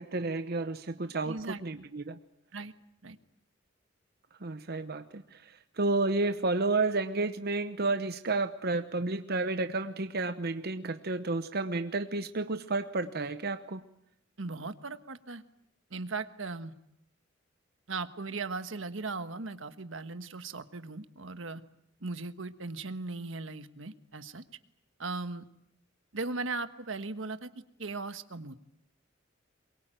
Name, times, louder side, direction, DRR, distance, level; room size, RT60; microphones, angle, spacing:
voice 1, 0.0-2.2 4.4-13.8, right 3 dB, 55° right, 9 dB, 1.0 m, -31 dB
voice 2, 1.2-1.9 2.5-2.7 3.0-3.2 14.4-15.4 15.9-16.7 17.9-21.6 22.0-24.4 25.0-25.5 26.1-27.5 27.8-28.5, right 3 dB, 80° right, 10 dB, 1.4 m, -38 dB
23.0 x 23.0 x 9.1 m, 0.76 s
head